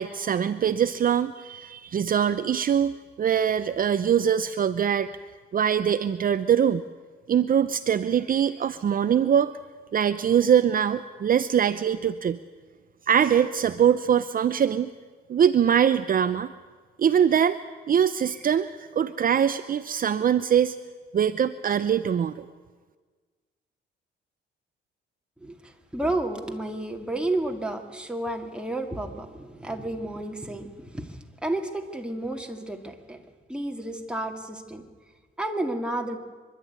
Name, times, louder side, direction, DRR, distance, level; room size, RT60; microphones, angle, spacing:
voice 1, 0.0-5.1 5.5-6.8 7.3-9.5 9.9-12.4 13.1-14.9 15.3-16.5 17.0-17.6 17.9-20.8 21.1-22.5, right 8 dB, 45° right, 11 dB, 0.7 m, -23 dB
voice 2, 25.9-31.1 31.4-33.2 33.5-34.8 35.4-36.2, right 1 dB, 5° right, 2 dB, 2.5 m, -31 dB
25.5 x 12.0 x 9.6 m, 1.5 s
cardioid pair, 90°, 20 cm